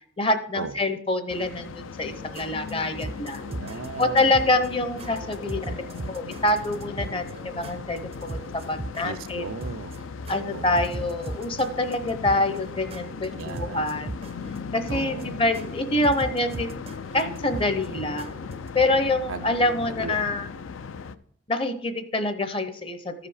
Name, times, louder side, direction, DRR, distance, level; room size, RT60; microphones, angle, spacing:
voice 1, 0.2-3.4 4.0-5.6 6.1-9.5 10.3-14.1 14.7-16.8 17.1-18.3 18.7-20.5 21.5-23.1, left 2 dB, 25° left, 0.7 m, -26 dB
sound 1, 1.3-21.1, left 5 dB, 75° left, 0.4 m, -38 dB
sound 2, 2.1-18.7, right 2 dB, 30° right, 0.4 m, -39 dB
voice 2, 3.5-4.4 9.0-9.9 10.5-10.9 13.3-14.1 14.9-15.4 19.3-20.2, right 4 dB, 90° right, 0.5 m, -37 dB
13.5 x 5.0 x 4.9 m
head